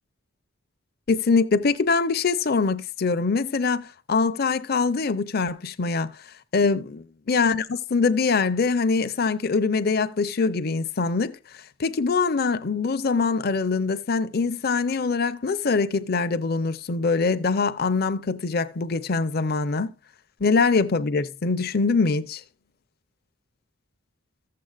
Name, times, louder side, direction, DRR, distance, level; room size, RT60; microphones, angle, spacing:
voice 1, 1.1-6.1 6.5-7.0 7.3-11.4 11.8-19.9 20.4-22.4, left 4 dB, 50° left, 0.6 m, -23 dB
14.5 x 7.6 x 2.4 m
head